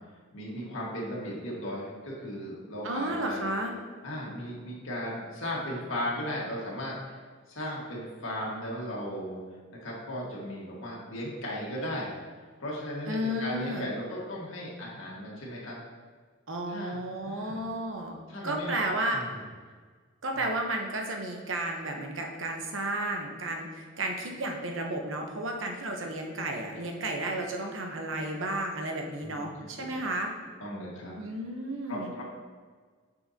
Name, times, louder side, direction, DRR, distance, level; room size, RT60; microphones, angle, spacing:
voice 1, 0.3-3.5 4.0-7.2 7.5-9.4 9.8-12.2 12.6-15.8 16.7-17.0 17.2-17.6 18.3-18.7 19.1-19.4 20.3-20.4 29.2-30.0 30.6-31.2 31.9-32.2, equal, 80° left, -4 dB, 1.8 m, -36 dB
voice 2, 2.8-3.7 13.1-13.9 16.5-19.2 20.2-30.3 31.2-32.1, right 1 dB, 75° right, 2 dB, 1.0 m, -33 dB
8.8 x 5.6 x 2.8 m, 1.5 s
head